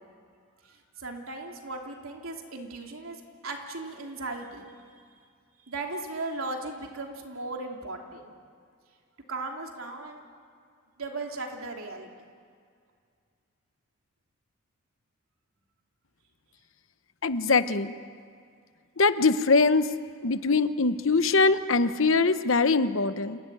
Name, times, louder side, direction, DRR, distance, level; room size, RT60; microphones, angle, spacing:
voice 1, 0.6-4.7 5.7-8.3 9.3-10.2 11.0-12.1, right 2 dB, 80° right, 1 dB, 3.1 m, -37 dB
voice 2, 17.2-17.9 19.0-19.9 20.2-23.4, left 3 dB, 70° left, 12 dB, 1.0 m, -22 dB
27.5 x 16.0 x 9.9 m, 2.2 s
head